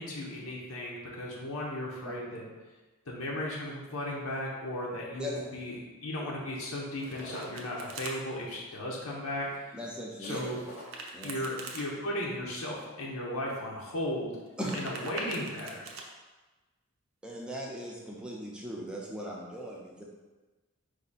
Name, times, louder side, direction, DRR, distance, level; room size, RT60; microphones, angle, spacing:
voice 1, 0.0-2.5 3.1-5.7 6.0-9.5 10.2-10.6 11.2-14.3 14.7-15.9, left 1 dB, 85° left, -3 dB, 0.9 m, -36 dB
Domestic sounds home sounds, 6.8-8.2 10.7-11.9 14.4-16.0, right 3 dB, 80° right, 0.7 m, -43 dB
sound 1, 7.0-8.9 9.5-9.6 9.8-9.9 10.2-10.9, left 1 dB, 30° left, 0.9 m, -46 dB
voice 2, 9.7-10.4 11.1-11.3 14.6-14.8 17.2-20.0, equal, 5° right, -3 dB, 0.6 m, -38 dB
4.7 x 2.7 x 4.1 m, 1.2 s
head